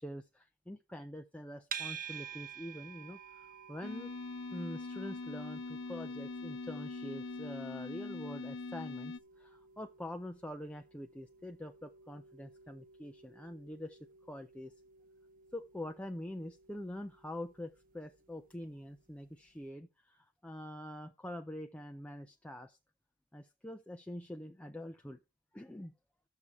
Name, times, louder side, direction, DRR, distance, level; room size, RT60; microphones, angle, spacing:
voice 1, 0.0-4.1 4.5-14.0 14.3-14.7 15.5-22.8 23.3-25.2 25.5-25.9, left 1 dB, 5° left, 0.4 m, -45 dB
sound 1, 1.7-18.9, right 7 dB, 40° right, 0.7 m, -51 dB
sound 2, 3.8-9.2, left 3 dB, 60° left, 0.6 m, -42 dB
8.6 x 6.7 x 4.6 m
head